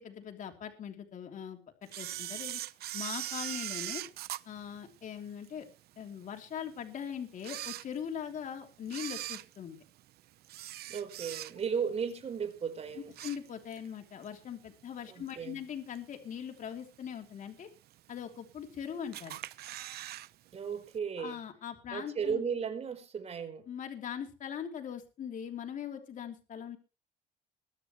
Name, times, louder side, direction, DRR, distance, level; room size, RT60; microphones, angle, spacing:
voice 1, 0.0-1.6 2.0-2.6 2.9-4.0 4.4-5.7 6.0-9.8 13.2-17.7 18.1-19.4 21.2-22.4 23.7-26.8, left 8 dB, 50° left, 3.2 m, -41 dB
Camera, 1.9-5.5 6.0-6.1 6.8-6.9 7.3-8.4 8.8-11.8 12.2-12.5 12.8-13.9 14.2-14.3 15.3-15.4 16.0-16.4 16.8-16.9 17.1-17.2 17.3-17.4 18.2-18.7 19.1-20.3 20.5-20.6 20.9-21.0, right 14 dB, 70° right, 0.9 m, -40 dB
voice 2, 10.9-13.1 15.1-15.6 20.5-21.4 21.9-23.7, right 6 dB, 40° right, 4.4 m, -35 dB
23.0 x 10.0 x 3.2 m
cardioid pair, 110°, 17 cm